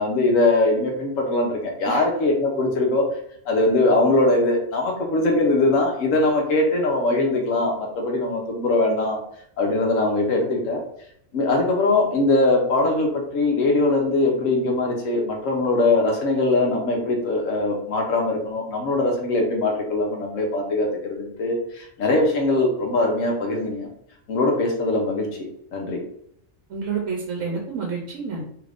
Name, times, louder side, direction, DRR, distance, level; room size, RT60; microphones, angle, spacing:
voice 1, 0.0-3.0 3.5-9.2 9.6-10.8 11.3-23.9 24.3-25.3 25.7-26.0, left 2 dB, 80° left, 1 dB, 1.2 m, -21 dB
voice 2, 26.7-28.4, right 5 dB, 85° right, -2 dB, 1.1 m, -29 dB
3.1 x 2.5 x 3.4 m, 0.69 s
omnidirectional pair, 1.3 m